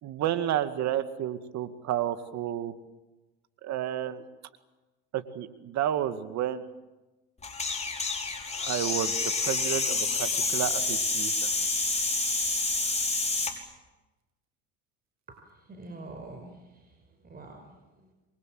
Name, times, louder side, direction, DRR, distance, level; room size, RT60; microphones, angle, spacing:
voice 1, 0.0-2.7 3.6-4.2 5.1-6.6 8.5-9.1 9.4-11.3, right 11 dB, 55° right, 9 dB, 2.2 m, -31 dB
sound 1, 7.4-13.5, left 3 dB, 20° left, 5.4 m, -28 dB
voice 2, 15.3-16.9 17.2-18.1, right 2 dB, 30° right, 4 dB, 5.8 m, -46 dB
28.0 x 23.5 x 7.8 m, 1.1 s
hypercardioid pair, 80°, 32 cm